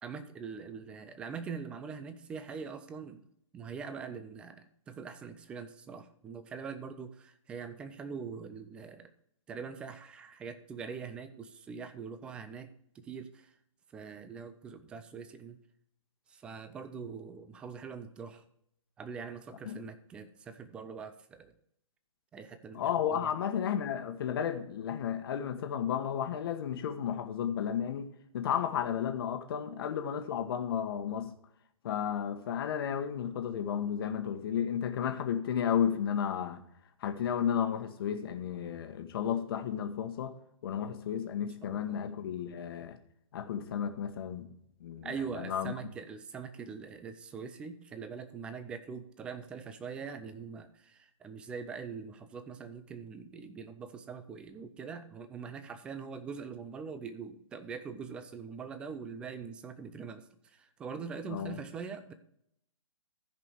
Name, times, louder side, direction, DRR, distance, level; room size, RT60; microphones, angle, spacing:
voice 1, 0.0-3.3 3.5-9.1 9.5-13.6 13.9-15.6 16.3-18.4 19.0-21.5 22.3-22.8 23.1-23.3 41.6-42.0 45.0-62.1, right 6 dB, 5° right, 0.4 m, -43 dB
voice 2, 22.7-31.3 31.8-36.6 37.0-43.0 43.3-44.5 44.8-45.7 61.3-61.6, left 8 dB, 45° left, 1.2 m, -33 dB
14.5 x 5.2 x 4.5 m
hypercardioid pair, 155°, 17 cm